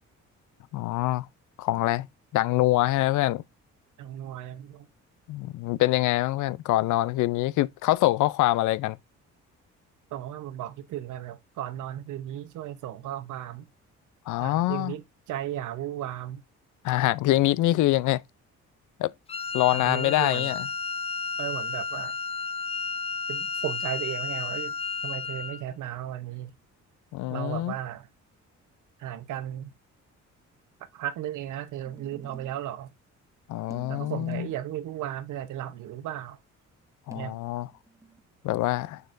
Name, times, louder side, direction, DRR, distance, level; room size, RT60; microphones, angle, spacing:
voice 1, 0.7-1.3 1.6-2.1 2.3-3.4 5.3-9.0 14.3-14.9 16.8-18.2 19.0-19.1 19.5-20.7 27.1-27.7 33.5-34.5 37.1-37.7 38.4-39.0, left 16 dB, 80° left, 0.5 m, -25 dB
voice 2, 4.0-4.9 10.1-13.7 14.4-16.4 19.7-20.5 21.4-22.2 23.3-24.7 25.0-26.5 27.3-28.1 29.0-29.7 30.9-32.9 33.9-36.4 37.1-37.4, right 12 dB, 80° right, 0.9 m, -35 dB
Wind instrument woodwind instrument, 19.3-25.6, left 5 dB, 20° left, 0.4 m, -32 dB
sound 1, 31.8-32.7 33.7-34.7 37.1-38.2, right 4 dB, 10° right, 1.1 m, -49 dB
6.8 x 6.5 x 2.6 m
cardioid pair, 90°, 30 cm